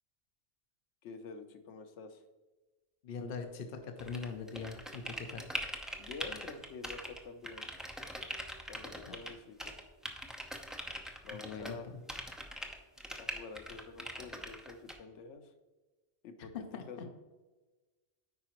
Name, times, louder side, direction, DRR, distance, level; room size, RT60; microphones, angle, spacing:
voice 1, 1.0-2.2 6.0-7.7 8.7-9.7 11.2-11.9 13.2-15.5 16.2-17.1, left 4 dB, 80° left, 8 dB, 1.0 m, -48 dB
voice 2, 3.0-5.5 9.1-9.2 11.3-12.0 16.4-16.8, left 5 dB, 60° left, 5 dB, 0.8 m, -42 dB
sound 1, 4.0-7.2 7.4-9.3 9.6-11.8 12.1-15.0, equal, ahead, 0.5 m, -42 dB
9.4 x 4.9 x 3.0 m, 1.2 s
omnidirectional pair, 1.2 m